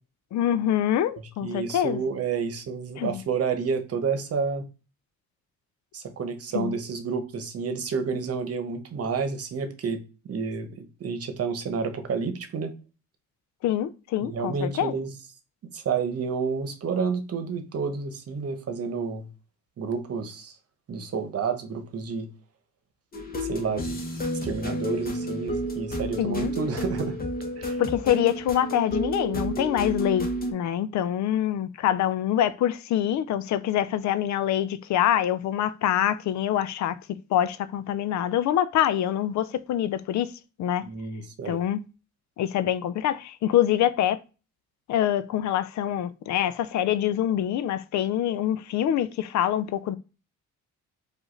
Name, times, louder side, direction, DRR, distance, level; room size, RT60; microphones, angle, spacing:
voice 1, 0.3-2.0 3.0-3.2 6.5-6.7 13.6-14.9 26.2-26.6 27.8-37.0 37.3-40.3 40.6-40.8 41.5-41.8 42.4-44.2 44.9-50.0, left 11 dB, 70° left, 0.5 m, -25 dB
voice 2, 1.4-4.6 5.9-10.0 10.3-12.7 14.2-15.1 15.7-19.2 19.8-20.5 20.9-22.3 23.5-24.0 24.4-27.2 27.6-27.8 40.8-41.6, right 5 dB, 50° right, 1.0 m, -30 dB
sound 1, 23.1-30.5, equal, 30° left, 1.1 m, -31 dB
4.9 x 2.6 x 3.8 m
cardioid pair, 90°, 30 cm